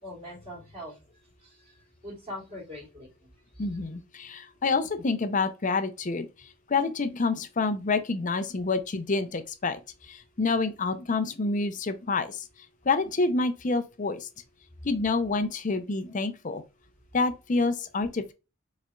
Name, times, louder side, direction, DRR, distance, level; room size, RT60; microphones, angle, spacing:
voice 1, 0.0-1.0 1.4-3.1 3.5-3.7, left 1 dB, 30° right, 2.6 m, -42 dB
voice 2, 3.6-6.3 6.7-9.8 10.1-12.4 12.8-14.3 14.8-16.6 17.1-18.3, left 3 dB, 40° left, 0.6 m, -28 dB
5.1 x 4.2 x 2.3 m
head